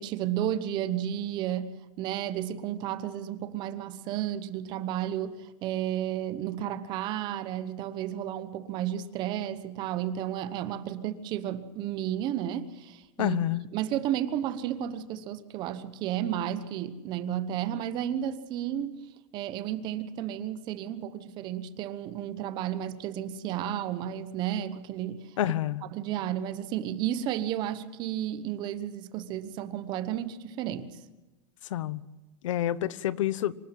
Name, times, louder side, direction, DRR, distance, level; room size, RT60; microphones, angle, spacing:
voice 1, 0.0-1.7 2.0-13.4 13.7-19.0 19.3-25.2 25.9-31.0, right 11 dB, 30° right, 1.0 m, -32 dB
voice 2, 13.2-13.6 25.4-25.9 31.7-32.0 32.4-33.5, left 12 dB, 85° left, 0.9 m, -28 dB
25.0 x 12.0 x 9.1 m
supercardioid pair, 170°, 16 cm